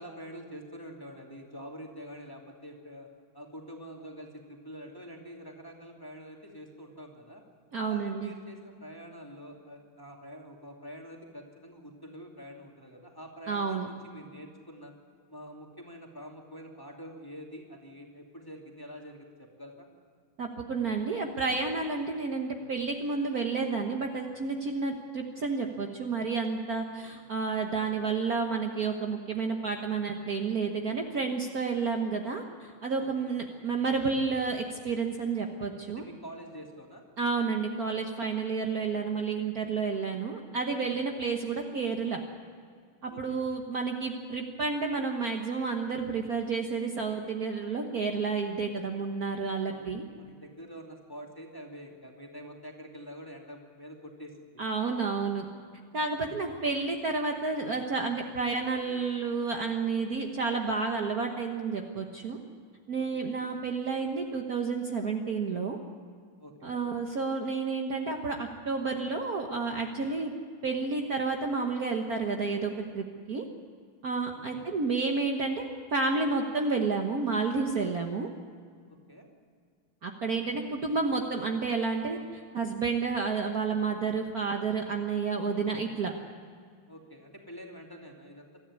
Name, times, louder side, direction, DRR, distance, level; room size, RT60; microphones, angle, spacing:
voice 1, 0.0-3.1 3.3-7.4 7.7-14.9 15.3-19.9 33.0-33.3 35.9-37.0 40.9-41.2 43.1-43.4 49.7-54.6 56.1-56.4 62.9-63.3 66.4-66.8 74.3-74.7 78.9-79.3 86.9-88.6, equal, 10° left, 0 dB, 2.7 m, -46 dB
voice 2, 7.7-8.3 13.5-13.9 20.4-36.0 37.2-42.2 43.0-50.0 54.6-55.5 55.9-62.4 62.9-65.8 66.6-70.3 70.6-73.4 74.0-78.3 80.0-86.1, right 4 dB, 50° right, 2 dB, 1.6 m, -30 dB
23.5 x 14.0 x 9.7 m, 2.1 s
omnidirectional pair, 2.3 m